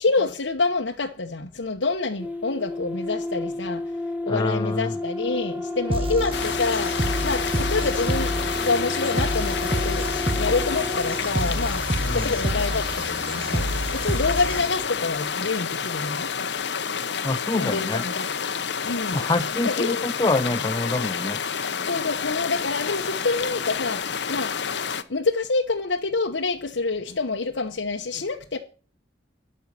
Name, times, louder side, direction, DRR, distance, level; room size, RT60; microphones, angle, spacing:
voice 1, 0.0-3.8 4.2-8.3 8.6-10.1 10.4-11.9 12.1-16.3 17.5-18.3 18.8-19.2 19.6-20.1 21.8-24.7 25.1-28.6, left 3 dB, 85° left, 1.1 m, -27 dB
sound 1, 2.2-11.3, left 2 dB, 10° right, 1.3 m, -31 dB
voice 2, 4.3-5.0 12.0-12.4 17.2-18.0 19.1-21.4, left 2 dB, 25° left, 0.5 m, -26 dB
sound 2, 5.9-14.9, right 1 dB, 30° right, 1.0 m, -29 dB
sound 3, 6.3-25.0, left 6 dB, 65° left, 0.9 m, -29 dB
12.5 x 5.6 x 8.7 m
head